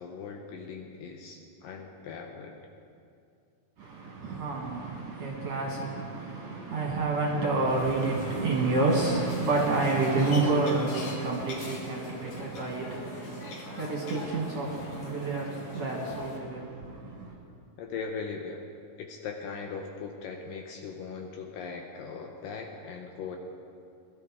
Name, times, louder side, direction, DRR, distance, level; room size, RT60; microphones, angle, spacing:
voice 1, 0.0-2.6 17.8-18.6 19.0-23.4, left 5 dB, 75° left, 2.2 m, -39 dB
voice 2, 3.8-17.4, right 3 dB, 55° right, 2.1 m, -29 dB
sound 1, 7.7-16.4, left 2 dB, 50° left, 2.4 m, -42 dB
21.5 x 12.5 x 3.6 m
omnidirectional pair, 4.6 m